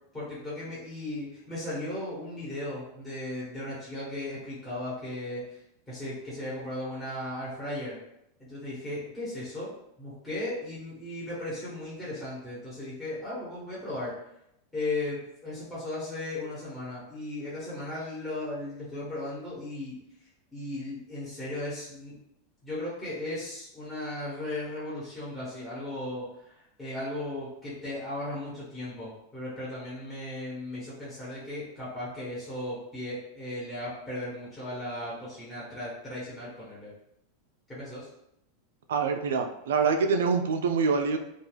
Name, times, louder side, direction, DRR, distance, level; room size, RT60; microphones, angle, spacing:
voice 1, 0.1-5.4 5.9-8.0 8.4-14.1 14.7-20.0 20.5-22.2 22.6-36.9 37.7-38.1, left 1 dB, 10° left, -9 dB, 1.0 m, -36 dB
voice 2, 38.9-41.2, right 5 dB, 85° right, 6 dB, 0.3 m, -25 dB
2.3 x 2.2 x 3.2 m, 0.81 s
supercardioid pair, 130°, 0 cm